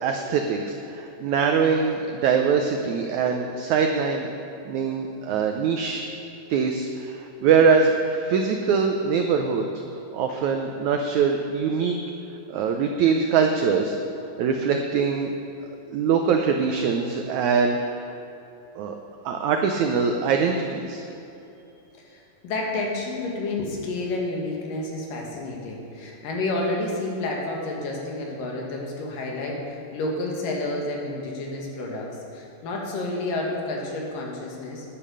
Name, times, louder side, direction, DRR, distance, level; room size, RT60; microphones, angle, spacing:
voice 1, 0.0-4.3 4.6-6.0 6.5-9.7 10.1-12.0 12.5-14.0 14.4-15.3 15.9-18.0 18.7-19.0 19.2-21.0, right 6 dB, 90° right, 4 dB, 1.6 m, -23 dB
voice 2, 22.1-34.9, left 2 dB, 65° left, -1 dB, 3.2 m, -30 dB
10.5 x 10.0 x 6.7 m, 2.8 s
omnidirectional pair, 4.2 m